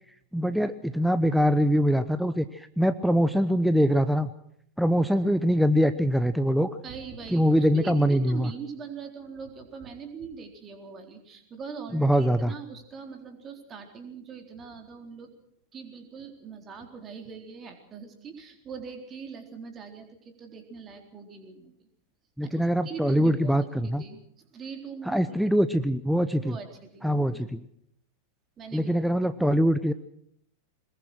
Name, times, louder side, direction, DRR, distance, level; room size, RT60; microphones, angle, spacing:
voice 1, 0.3-4.3 4.8-6.7 7.3-8.5 11.9-12.5 22.4-24.0 25.1-26.6 27.0-27.6 28.7-29.9, equal, ahead, 12 dB, 0.8 m, -23 dB
voice 2, 6.8-15.3 15.7-21.7 22.4-23.6 23.8-25.4 26.4-27.5 28.6-28.9, right 5 dB, 25° right, 4 dB, 4.0 m, -42 dB
22.0 x 21.0 x 6.2 m, 0.70 s
figure-of-eight pair, 90°, 0 cm